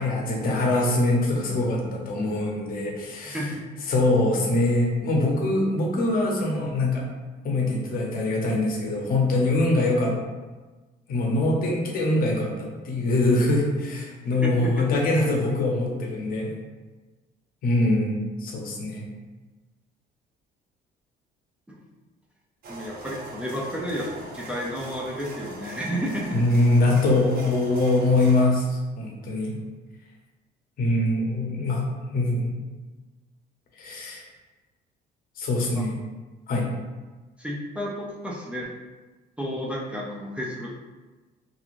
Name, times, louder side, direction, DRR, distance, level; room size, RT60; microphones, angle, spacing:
voice 1, 0.0-3.4 3.9-7.0 7.4-10.1 11.1-16.5 17.6-19.1 26.3-29.6 30.8-32.6 33.8-34.2 35.4-36.0 36.5-36.7, left 2 dB, 60° left, -1 dB, 0.7 m, -23 dB
voice 2, 3.2-3.7 14.4-14.9 21.7-21.8 22.7-24.1 24.3-26.4 35.7-35.8 37.4-38.7 39.4-40.7, equal, 5° right, -3 dB, 0.4 m, -31 dB
sound 1, 22.6-28.5, right 2 dB, 60° right, 0.6 m, -40 dB
2.9 x 2.4 x 2.5 m, 1.2 s
cardioid pair, 110°, 17 cm